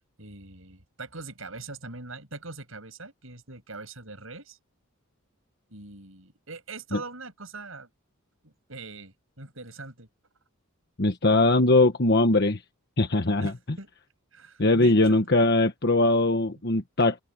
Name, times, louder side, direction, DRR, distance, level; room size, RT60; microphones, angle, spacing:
voice 1, 0.2-4.6 5.7-7.9 8.4-10.1 13.4-13.9 14.3-15.2, right 3 dB, 70° right, 7.4 m, -42 dB
voice 2, 11.0-12.6 13.0-13.5 14.6-17.2, left 2 dB, 50° left, 1.3 m, -21 dB
open air
head